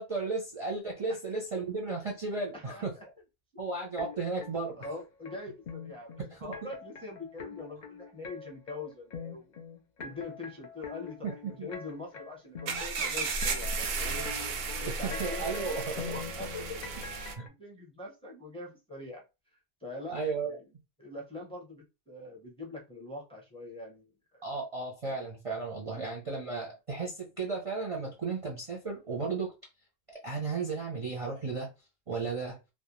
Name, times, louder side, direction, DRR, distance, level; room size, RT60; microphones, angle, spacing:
voice 1, 0.0-2.9 3.6-4.8 6.3-6.5 11.2-11.7 14.9-15.8 16.1-16.2 17.4-17.5 20.1-20.6 24.4-29.5 30.2-31.7 32.1-32.6, right 4 dB, 40° right, 0.5 m, -34 dB
voice 2, 2.5-3.0 3.5-3.6 4.7-9.6 10.0-14.2 14.8-17.0 17.4-19.2 19.8-20.7 21.0-24.0 24.3-24.4 25.6-26.4, left 2 dB, 5° left, 0.6 m, -43 dB
sound 1, 4.0-17.5, left 4 dB, 50° left, 0.6 m, -43 dB
sound 2, 12.7-17.4, right 4 dB, 85° right, 0.9 m, -34 dB
2.4 x 2.1 x 2.9 m
omnidirectional pair, 1.1 m